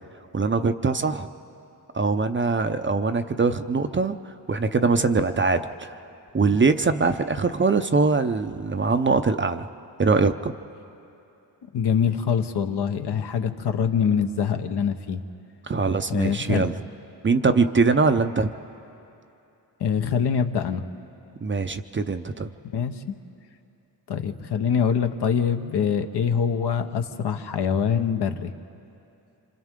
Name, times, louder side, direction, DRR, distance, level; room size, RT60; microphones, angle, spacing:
voice 1, 0.3-1.3 1.9-4.2 4.5-6.0 6.3-9.7 10.0-10.5 15.6-16.7 17.2-18.5 21.4-22.5, right 4 dB, 25° right, 8 dB, 0.7 m, -22 dB
voice 2, 11.7-15.2 16.1-16.7 19.8-20.8 22.6-23.0 24.1-28.5, left 7 dB, 65° left, 6 dB, 1.1 m, -24 dB
29.0 x 25.5 x 3.7 m, 2.8 s
cardioid pair, 80°, 43 cm